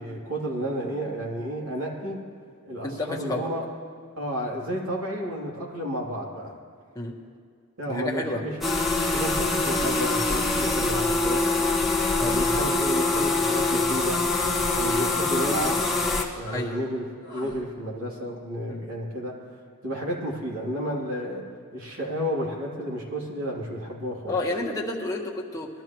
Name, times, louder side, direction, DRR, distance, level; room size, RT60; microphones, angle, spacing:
voice 1, 0.0-2.2 2.6-3.6 4.2-6.5 7.8-8.6 9.1-11.4 12.2-14.2 14.7-15.8 16.4-19.4 19.8-21.4 21.7-24.4, equal, 75° right, -3 dB, 3.0 m, -31 dB
voice 2, 2.8-3.5 6.9-7.2 7.9-8.4 12.2-12.4 14.8-15.0 16.5-16.8 18.7-18.9 24.3-25.7, left 2 dB, 15° left, -1 dB, 1.4 m, -30 dB
sound 1, 8.6-16.2, left 2 dB, ahead, 1.3 m, -24 dB
sound 2, 12.2-12.6 12.8-13.4 13.7-14.0 14.7-15.1 15.5-15.8 16.4-16.9 17.2-17.7, left 2 dB, 20° right, 2.0 m, -44 dB
21.0 x 12.5 x 3.1 m, 2.2 s
head